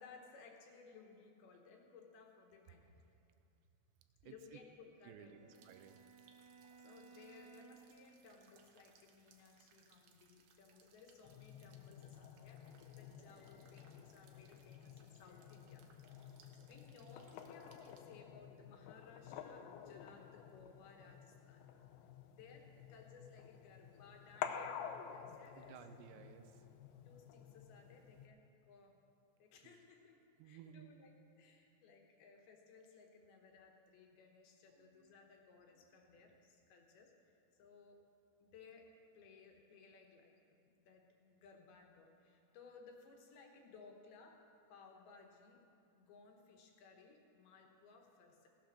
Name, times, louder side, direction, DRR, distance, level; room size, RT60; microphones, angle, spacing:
voice 1, 0.0-2.9 4.2-5.5 6.8-21.6 22.3-25.8 27.1-29.0 29.4-31.1 31.4-38.0 38.4-40.4 40.7-45.6 46.0-48.5, left 4 dB, 70° left, 2 dB, 3.0 m, -61 dB
voice 2, 2.7-3.1 4.3-4.6 5.0-6.1 22.1-22.2 25.6-26.7 29.6-29.8 30.4-30.9 34.6-35.2 35.8-35.9, right 9 dB, 90° right, 9 dB, 2.9 m, -58 dB
Bowed string instrument, 4.9-8.0, right 5 dB, 30° right, 3.1 m, -61 dB
sound 1, 5.5-18.0, right 6 dB, 70° right, 2.3 m, -70 dB
sound 2, 11.2-28.3, left 8 dB, 90° left, 2.9 m, -51 dB
17.0 x 8.7 x 6.5 m, 2.6 s
omnidirectional pair, 4.9 m